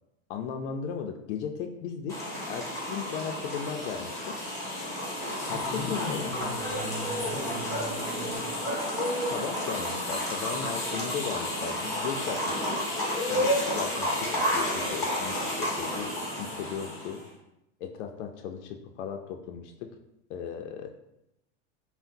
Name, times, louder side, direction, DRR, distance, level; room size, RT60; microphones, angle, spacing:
voice 1, 0.3-2.2 2.5-4.4 5.5-6.3 9.3-12.8 13.3-17.2 17.8-19.9 20.3-20.9, left 7 dB, 90° left, 4 dB, 0.5 m, -36 dB
sound 1, 2.1-17.2, left 1 dB, 10° left, 1.2 m, -31 dB
voice 2, 5.4-8.5, left 1 dB, 30° left, 0 dB, 1.1 m, -38 dB
5.6 x 2.1 x 2.6 m, 0.84 s
supercardioid pair, 155°, 34 cm